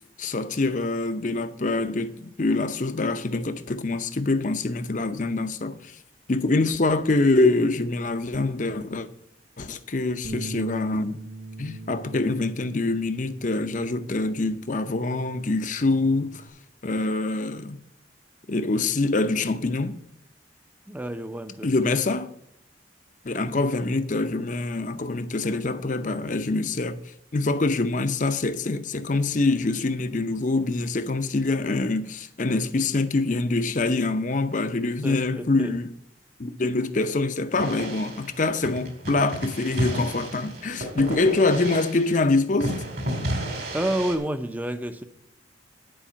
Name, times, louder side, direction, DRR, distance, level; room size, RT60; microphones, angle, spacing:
voice 1, 0.2-5.9 6.3-9.1 9.6-11.2 11.6-16.4 16.8-17.8 18.5-20.0 21.6-22.3 23.2-27.0 27.3-35.9 36.4-42.7, left 2 dB, 40° left, 0.6 m, -25 dB
Bass guitar, 10.2-16.5, right 3 dB, 85° right, 1.3 m, -41 dB
voice 2, 20.9-21.7 35.0-35.7 43.7-45.0, right 1 dB, 10° right, 0.6 m, -29 dB
sound 1, 37.6-42.3 42.6-44.2, right 1 dB, 55° right, 2.2 m, -32 dB
10.0 x 4.8 x 8.0 m
head